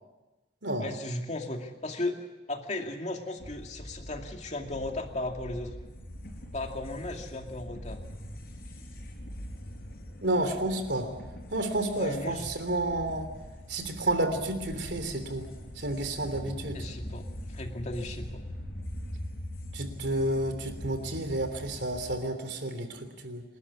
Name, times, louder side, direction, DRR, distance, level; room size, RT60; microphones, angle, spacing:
voice 1, 0.8-2.2 2.5-5.7 6.5-8.0 12.0-12.5 16.7-17.2 17.5-18.4, left 2 dB, 40° left, 3 dB, 2.4 m, -35 dB
sound 1, 3.4-22.2, equal, 55° left, 4.7 m, -42 dB
voice 2, 10.2-11.1 11.5-13.3 13.7-15.5 15.8-16.8 19.7-23.4, right 1 dB, 70° right, 8 dB, 3.3 m, -30 dB
27.5 x 12.5 x 9.7 m, 1.2 s
head